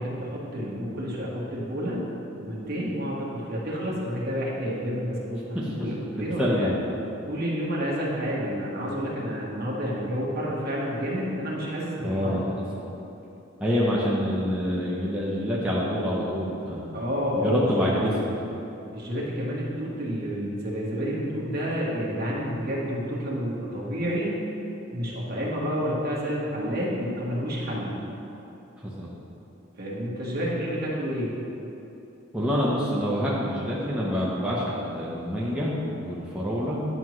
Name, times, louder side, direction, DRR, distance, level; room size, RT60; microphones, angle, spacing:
voice 1, 0.0-2.0 2.4-6.7 7.3-12.4 13.8-13.9 16.9-18.3 18.9-24.4 24.9-27.9 29.8-31.3, equal, 50° right, -5 dB, 1.4 m, -29 dB
voice 2, 6.4-6.7 12.0-12.5 12.7-12.9 13.6-16.9 17.4-18.1 28.8-29.1 32.3-36.8, equal, 5° right, -7 dB, 0.7 m, -26 dB
9.5 x 6.0 x 3.1 m, 2.9 s
head